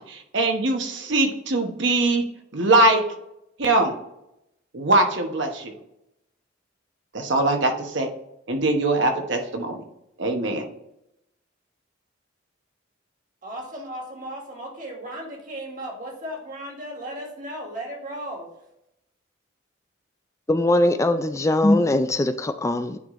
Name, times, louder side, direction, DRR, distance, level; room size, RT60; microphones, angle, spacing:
voice 1, 0.0-2.2 2.5-3.0 3.6-3.9 4.7-5.7 7.1-8.1 8.5-9.8 10.2-10.6, right 2 dB, 65° right, 4 dB, 1.0 m, -22 dB
voice 2, 13.4-18.5, right 1 dB, 40° right, 0 dB, 1.8 m, -35 dB
voice 3, 20.5-23.0, left 1 dB, 15° left, 10 dB, 0.3 m, -21 dB
9.5 x 3.8 x 3.1 m, 0.83 s
head